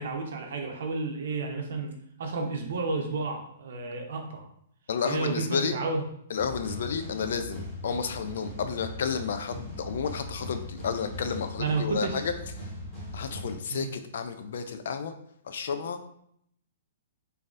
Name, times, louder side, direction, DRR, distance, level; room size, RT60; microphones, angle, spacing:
voice 1, 0.0-1.9 2.2-4.5 5.0-6.0 11.6-12.2 13.7-13.9, right 3 dB, 65° right, 3 dB, 0.7 m, -31 dB
voice 2, 4.9-5.8 6.3-12.3 13.1-15.1 15.4-16.1, left 6 dB, 65° left, 8 dB, 0.4 m, -31 dB
sound 1, 6.4-13.5, left 1 dB, 5° left, 1.1 m, -40 dB
3.8 x 2.6 x 2.5 m, 0.70 s
hypercardioid pair, 165°, 0 cm